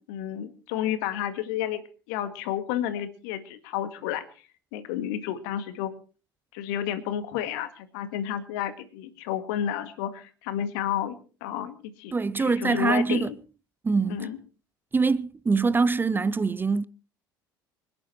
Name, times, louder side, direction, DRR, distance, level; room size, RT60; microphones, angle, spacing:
voice 1, 0.0-4.2 4.7-5.9 6.5-13.4 14.1-14.4, left 10 dB, 65° left, 2.0 m, -31 dB
voice 2, 12.1-13.3 13.8-14.3 14.9-16.9, right 4 dB, 20° right, 0.6 m, -24 dB
25.5 x 10.5 x 4.4 m
figure-of-eight pair, 60°, 11 cm